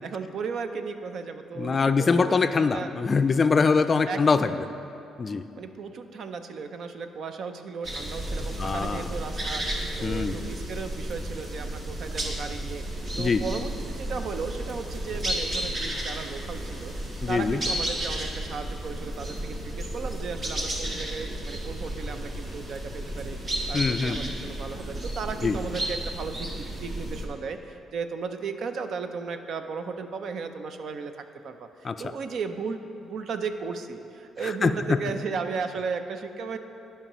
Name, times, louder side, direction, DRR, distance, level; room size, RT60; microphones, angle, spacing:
voice 1, 0.0-2.9 4.1-4.7 5.6-16.9 17.3-23.4 23.7-31.1 31.4-31.7 32.0-36.6, right 5 dB, 65° right, 8 dB, 0.5 m, -35 dB
voice 2, 1.6-4.5 5.2-5.4 8.6-9.0 10.0-10.3 13.2-13.4 17.2-17.6 23.7-24.2 25.4-25.6 31.8-32.0 34.4-34.7, left 4 dB, 40° left, 10 dB, 0.4 m, -23 dB
sound 1, 7.8-27.3, right 1 dB, 45° right, 1.6 m, -33 dB
15.5 x 5.6 x 3.0 m, 2.7 s
cardioid pair, 90°, 0 cm